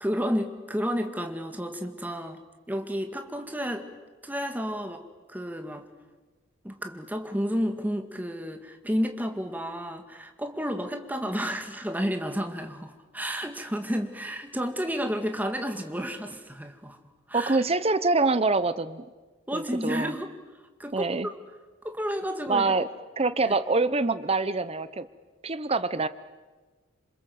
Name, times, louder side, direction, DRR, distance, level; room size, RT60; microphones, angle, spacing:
voice 1, 0.0-2.4 2.7-3.9 4.2-5.9 6.6-17.0 17.3-17.6 19.5-20.3 20.8-21.1 21.8-22.7 23.5-23.6, equal, 10° right, 5 dB, 2.0 m, -31 dB
voice 2, 17.3-19.0 19.5-20.1 20.9-21.3 22.5-22.9 23.2-25.1 25.4-26.1, right 3 dB, 30° right, 14 dB, 1.0 m, -25 dB
27.0 x 26.5 x 7.9 m, 1.3 s
head